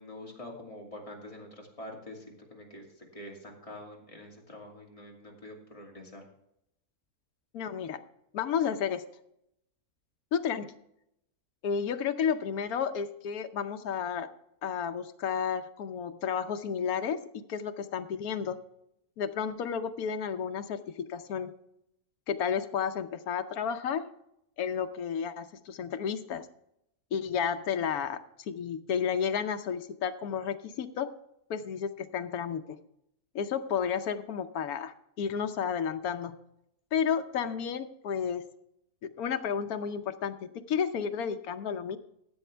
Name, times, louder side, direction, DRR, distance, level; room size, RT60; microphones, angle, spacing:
voice 1, 0.0-6.2, left 1 dB, 20° left, -1 dB, 2.5 m, -46 dB
voice 2, 7.5-8.0 8.3-9.0 10.3-10.7 11.6-14.3 14.6-17.2 17.5-18.6 19.2-21.5 22.3-24.1 24.6-26.5 27.1-31.1 31.5-32.8 33.3-36.3 36.9-38.5 39.0-42.0, left 7 dB, 80° left, 9 dB, 1.2 m, -32 dB
15.0 x 8.1 x 3.3 m, 0.79 s
omnidirectional pair, 1.6 m